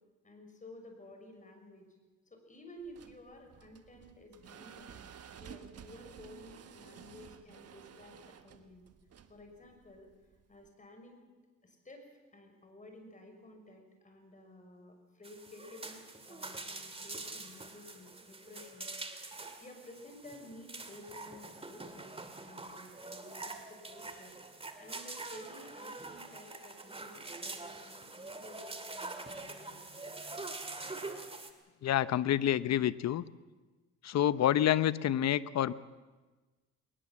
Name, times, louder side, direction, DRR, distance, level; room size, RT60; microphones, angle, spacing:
voice 1, 0.2-1.9 2.3-5.0 5.4-8.8 9.3-10.1 10.5-11.2 11.6-12.1 12.3-18.9 19.6-29.8, left 1 dB, 25° left, 4 dB, 6.0 m, -53 dB
sound 1, 2.8-10.7, right 7 dB, 55° right, 1.4 m, -53 dB
sound 2, 15.2-31.5, right 3 dB, 20° right, 2.3 m, -45 dB
voice 2, 31.8-33.2 34.0-35.7, left 11 dB, 60° left, 16 dB, 0.8 m, -28 dB
21.0 x 20.0 x 7.4 m, 1.3 s
cardioid pair, 90°, 30 cm